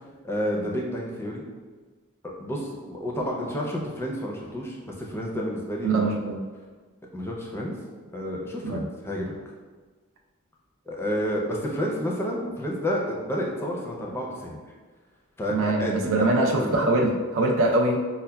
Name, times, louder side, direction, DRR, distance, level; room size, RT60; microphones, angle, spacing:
voice 1, 0.2-1.4 2.2-6.1 7.1-7.8 8.1-9.3 10.9-14.6 15.4-16.8, equal, 10° left, -2 dB, 0.5 m, -30 dB
voice 2, 5.8-6.4 8.6-8.8 15.5-18.0, right 2 dB, 65° right, 0 dB, 0.5 m, -23 dB
5.5 x 2.2 x 2.2 m, 1.4 s
head